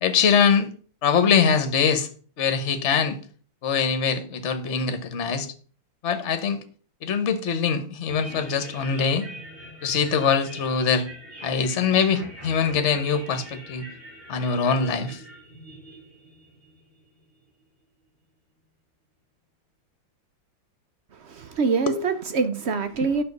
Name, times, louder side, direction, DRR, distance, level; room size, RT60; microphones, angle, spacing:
voice 1, 0.0-0.7 1.0-2.1 2.4-3.2 3.6-5.5 6.0-6.6 7.0-9.3 9.8-11.1 11.4-13.8 14.3-15.2 21.9-22.0, left 6 dB, 45° left, 1.2 m, -23 dB
sound 1, 8.1-17.4, equal, 40° right, 4.7 m, -43 dB
voice 2, 21.3-23.2, right 4 dB, 65° right, 0.6 m, -25 dB
9.5 x 6.7 x 5.3 m
omnidirectional pair, 2.1 m